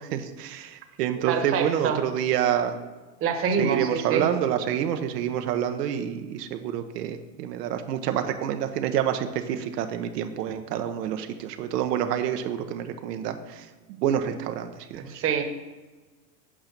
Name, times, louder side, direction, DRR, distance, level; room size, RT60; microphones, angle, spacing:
voice 1, 0.0-2.8 3.6-15.0, right 9 dB, 80° right, 6 dB, 1.0 m, -28 dB
voice 2, 1.3-2.0 3.2-4.3 15.1-15.4, right 6 dB, 30° right, 5 dB, 1.2 m, -26 dB
8.7 x 5.1 x 6.1 m, 1.3 s
supercardioid pair, 135°, 48 cm